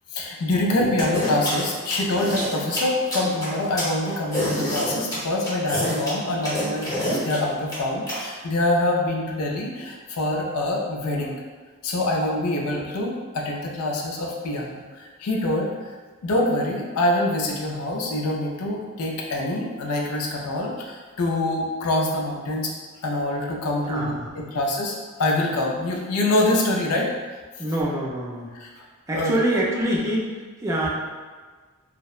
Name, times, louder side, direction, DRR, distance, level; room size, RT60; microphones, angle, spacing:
voice 1, 0.1-11.4 11.8-16.0 16.2-22.7 23.0-27.1 28.6-28.8 29.1-29.3, left 1 dB, 80° left, 0 dB, 0.4 m, -25 dB
sound 1, 1.0-8.2, equal, 15° left, 0.7 m, -27 dB
voice 2, 23.9-24.4 27.6-28.5 29.1-30.9, right 1 dB, 15° right, -4 dB, 0.4 m, -25 dB
2.8 x 2.0 x 2.3 m, 1.4 s
head